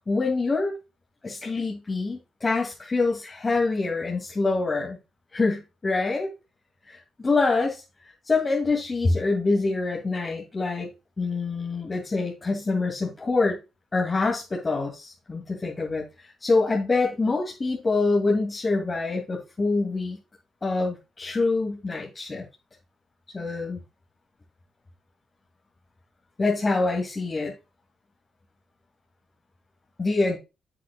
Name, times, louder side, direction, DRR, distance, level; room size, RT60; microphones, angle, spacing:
voice 1, 0.1-0.8 1.2-5.0 5.3-6.3 6.9-7.8 8.3-10.9 11.2-13.6 13.9-16.0 16.4-20.2 20.6-22.4 23.3-23.8 26.4-27.5 30.0-30.4, left 3 dB, 30° left, -1 dB, 2.5 m, -25 dB
10.5 x 7.6 x 2.3 m, 0.26 s
cardioid pair, 90°, 0 cm